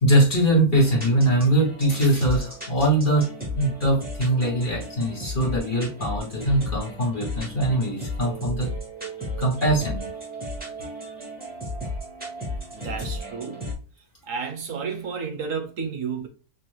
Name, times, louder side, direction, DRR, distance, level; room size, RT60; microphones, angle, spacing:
voice 1, 0.0-3.3 3.6-8.7 9.4-10.1, right 1 dB, 35° left, 2.3 m, -22 dB
sound 1, 0.8-13.7, left 1 dB, 5° right, 1.9 m, -34 dB
voice 2, 12.7-13.7 14.2-16.3, right 5 dB, 65° right, 1.1 m, -31 dB
6.0 x 3.1 x 2.3 m
omnidirectional pair, 1.6 m